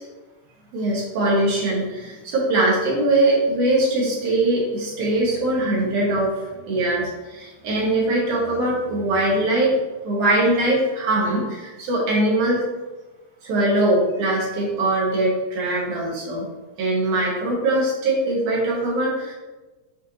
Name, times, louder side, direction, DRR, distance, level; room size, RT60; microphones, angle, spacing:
voice 1, 0.7-9.7 10.0-12.6 13.4-16.5 16.8-19.3, right 1 dB, 65° right, -5 dB, 2.9 m, -21 dB
9.9 x 3.5 x 2.9 m, 1.2 s
omnidirectional pair, 3.9 m